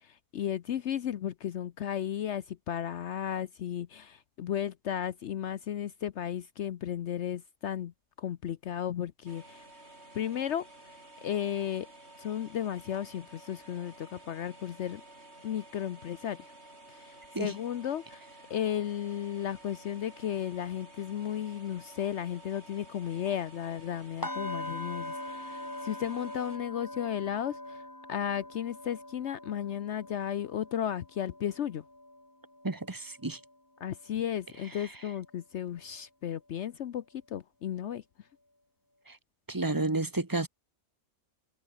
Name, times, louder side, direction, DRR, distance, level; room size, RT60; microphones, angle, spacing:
voice 1, 0.0-9.6 10.1-10.7 11.2-11.9 12.2-15.0 15.4-16.5 16.9-18.2 18.5-27.8 28.1-31.8 33.8-38.0, left 10 dB, 65° left, 1.0 m, -34 dB
sound 1, 9.3-26.6, right 1 dB, 55° right, 6.7 m, -52 dB
sound 2, 24.2-34.1 34.5-34.8 35.2-35.3, left 1 dB, 15° left, 2.7 m, -43 dB
voice 2, 32.6-33.4 39.1-39.2 39.5-40.5, right 2 dB, 15° right, 1.3 m, -31 dB
omnidirectional pair, 1.3 m